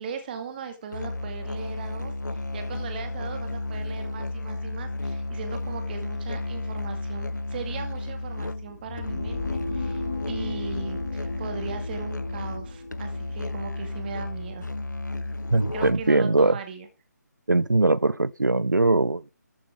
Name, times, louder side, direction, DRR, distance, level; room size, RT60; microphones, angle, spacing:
voice 1, 0.0-14.7 15.7-16.9, right 6 dB, 30° right, 2.3 m, -39 dB
Musical instrument, 0.9-16.2, left 2 dB, 80° left, 1.0 m, -33 dB
sound 1, 8.7-14.6, left 3 dB, 55° left, 5.6 m, -35 dB
voice 2, 15.5-16.6 17.5-19.3, right 2 dB, 85° right, 0.7 m, -21 dB
14.0 x 9.8 x 3.8 m
figure-of-eight pair, 150°, 10 cm